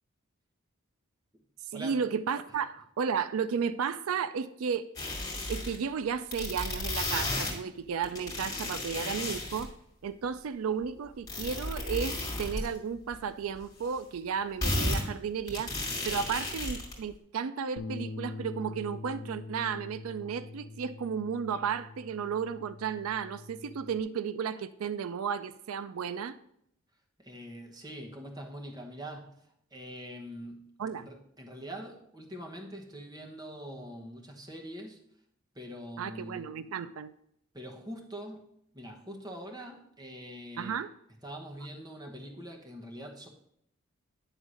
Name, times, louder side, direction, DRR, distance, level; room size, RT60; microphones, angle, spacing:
voice 1, 1.7-4.9 5.5-9.7 10.0-15.7 16.0-26.4 30.8-31.1 36.0-37.1 40.6-40.9, right 6 dB, 85° right, 13 dB, 0.4 m, -33 dB
sound 1, 5.0-5.8 6.3-7.5 8.0-9.7 11.3-12.7 13.1-13.2 13.5-13.6 14.6-15.0 15.5-16.9, left 2 dB, 15° left, 2.4 m, -33 dB
Bass guitar, 17.8-24.0, left 3 dB, 85° left, 0.6 m, -44 dB
voice 2, 27.2-29.4 29.7-30.6 31.0-35.0 35.5-36.5 37.5-38.4 38.7-40.8 41.2-43.3, equal, 20° right, 2 dB, 1.1 m, -43 dB
9.7 x 3.6 x 6.2 m, 0.73 s
head